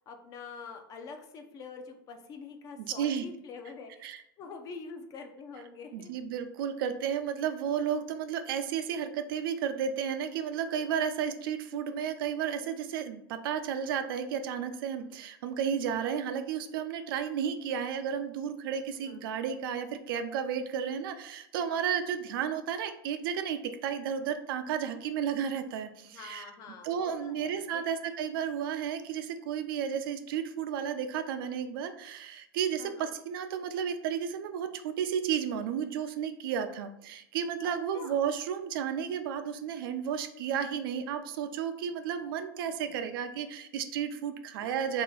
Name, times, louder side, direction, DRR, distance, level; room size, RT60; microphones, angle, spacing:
voice 1, 0.0-6.1 18.9-19.4 26.0-27.9 32.8-33.1 37.6-38.2 44.6-45.0, left 4 dB, 30° left, 5 dB, 0.5 m, -46 dB
voice 2, 5.9-26.4 26.8-45.0, right 8 dB, 75° right, 8 dB, 0.4 m, -33 dB
3.2 x 2.8 x 3.8 m, 0.78 s
supercardioid pair, 150°, 12 cm